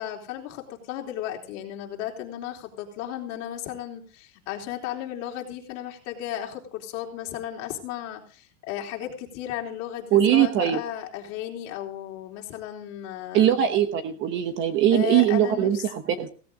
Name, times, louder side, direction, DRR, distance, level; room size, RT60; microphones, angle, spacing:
voice 1, 0.0-13.5 14.9-15.8, left 11 dB, 40° left, 1 dB, 4.0 m, -34 dB
voice 2, 10.1-10.8 13.3-16.3, right 10 dB, 25° right, 9 dB, 1.1 m, -21 dB
17.0 x 15.5 x 3.9 m, 0.40 s
supercardioid pair, 165°, 43 cm